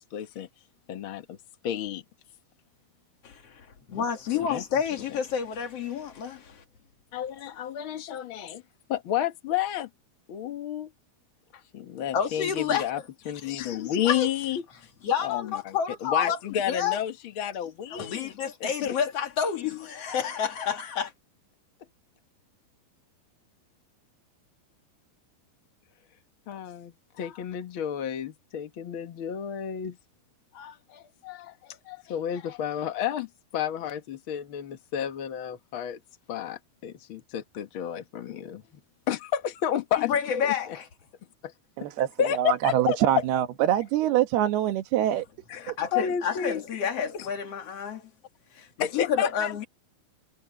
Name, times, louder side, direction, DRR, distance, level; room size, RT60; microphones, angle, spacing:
voice 1, 0.1-0.5 0.9-1.4 1.6-2.0 4.5-4.6 7.1-8.6 8.9-9.9 10.3-10.9 11.7-13.0 13.2-14.6 15.2-18.3 18.6-18.9 26.5-30.0 30.5-36.0 36.3-38.6 39.1-40.1 40.4-40.5 41.4-41.5 42.2-43.2 45.5-46.8 47.1-47.3 48.8-49.5, left 10 dB, 85° left, 1.1 m, -31 dB
voice 2, 3.2-6.6 12.1-13.0 13.6-13.7 14.0-14.3 15.0-17.0 17.9-21.1 40.0-40.9 45.6-48.1 48.5-49.7, left 7 dB, 45° left, 2.6 m, -29 dB
voice 3, 41.8-45.3 45.7-45.8, right 12 dB, 80° right, 3.3 m, -24 dB
omnidirectional pair, 4.6 m